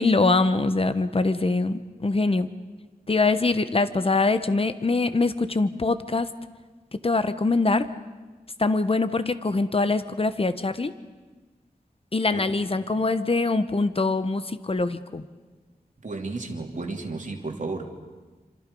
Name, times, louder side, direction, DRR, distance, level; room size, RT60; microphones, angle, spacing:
voice 1, 0.0-2.5 3.1-6.3 6.9-7.9 8.6-10.9 12.1-15.2, left 3 dB, 35° left, 12 dB, 1.1 m, -23 dB
voice 2, 16.0-18.0, right 3 dB, 55° right, 2 dB, 3.1 m, -33 dB
28.5 x 26.0 x 5.5 m, 1.3 s
wide cardioid pair, 85°, 16 cm